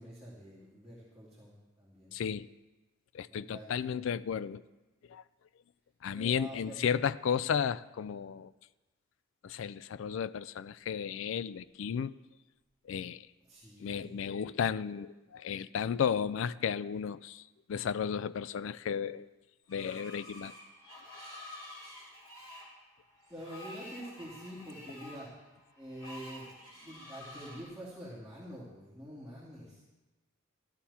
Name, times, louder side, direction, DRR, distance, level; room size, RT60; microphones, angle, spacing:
voice 1, 0.0-2.1 3.3-4.0 6.1-7.1 13.5-14.2 23.3-25.4 25.8-29.8, equal, ahead, 2.6 m, -47 dB
voice 2, 2.1-2.5 3.1-4.6 5.1-5.2 6.0-8.5 9.4-12.2 12.9-13.3 13.8-17.4 17.7-19.3 19.7-20.5, left 7 dB, 60° left, 0.3 m, -33 dB
Screech, 19.7-27.6, left 1 dB, 20° left, 3.6 m, -49 dB
14.0 x 12.0 x 4.3 m
head